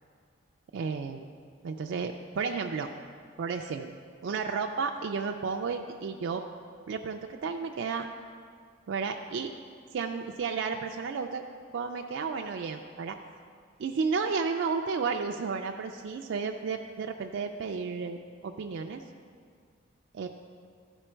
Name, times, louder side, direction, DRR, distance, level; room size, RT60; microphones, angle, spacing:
voice 1, 0.7-1.3 1.6-2.9 3.4-3.9 4.2-6.4 6.9-8.1 8.9-9.5 9.9-11.4 11.7-13.2 13.8-19.0 20.1-20.3, right 5 dB, 65° right, 3 dB, 0.3 m, -32 dB
12.5 x 4.5 x 4.4 m, 2.1 s
head